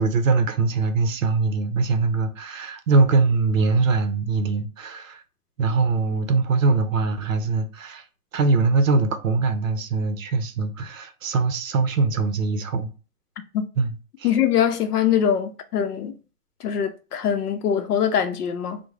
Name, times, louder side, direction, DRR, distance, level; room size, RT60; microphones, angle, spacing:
voice 1, 0.0-5.2 5.6-8.0 8.3-12.9 13.8-13.9 14.2-14.3, right 4 dB, 60° right, 0.6 m, -22 dB
voice 2, 14.2-16.1 16.6-18.8, left 8 dB, 80° left, 0.6 m, -23 dB
3.1 x 2.1 x 3.5 m
hypercardioid pair, 180°, 46 cm